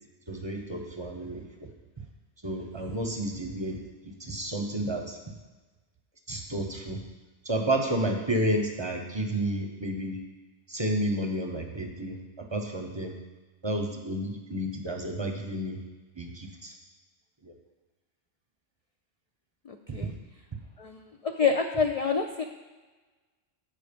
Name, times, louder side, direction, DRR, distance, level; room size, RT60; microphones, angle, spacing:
voice 1, 0.3-1.4 2.4-3.8 4.2-5.2 6.3-7.0 7.4-10.2 10.7-12.2 12.5-13.1 13.6-15.8 16.2-16.7 17.4-17.5, right 1 dB, 30° right, 2 dB, 0.7 m, -31 dB
voice 2, 19.7-20.1 20.8-22.4, left 5 dB, 70° left, 5 dB, 0.3 m, -27 dB
8.1 x 5.2 x 5.1 m, 1.3 s
omnidirectional pair, 1.2 m